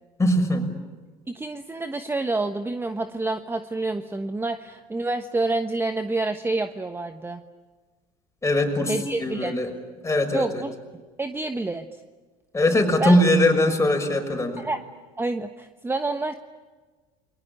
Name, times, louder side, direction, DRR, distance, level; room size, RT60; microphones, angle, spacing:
voice 1, 0.2-0.7 8.4-9.7 10.0-10.6 12.5-14.7, left 1 dB, 15° left, 4 dB, 6.1 m, -21 dB
voice 2, 1.3-7.4 8.9-9.5 10.3-10.7 11.2-11.9 13.0-13.2 14.6-14.8 15.2-16.3, right 2 dB, 10° right, 8 dB, 1.2 m, -28 dB
29.5 x 22.5 x 8.9 m, 1.4 s
supercardioid pair, 90°, 19 cm